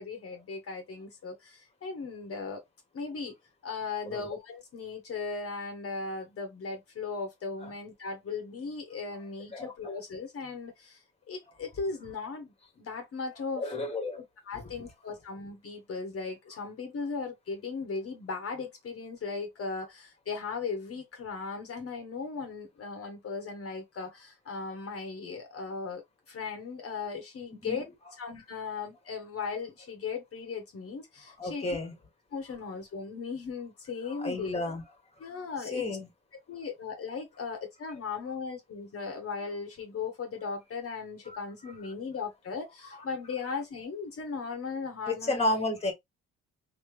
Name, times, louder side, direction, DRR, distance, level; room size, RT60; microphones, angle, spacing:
voice 1, 0.0-2.6 2.9-3.3 3.6-13.7 14.2-31.8 32.3-34.5 35.2-35.9 36.5-45.4, left 4 dB, 50° left, 1.1 m, -37 dB
voice 2, 13.6-14.2 27.6-27.8 31.4-31.9 34.2-34.8 35.7-36.1 41.3-41.4 45.1-45.9, left 2 dB, 20° left, 1.4 m, -31 dB
3.1 x 2.9 x 3.1 m
cardioid pair, 90°, 30 cm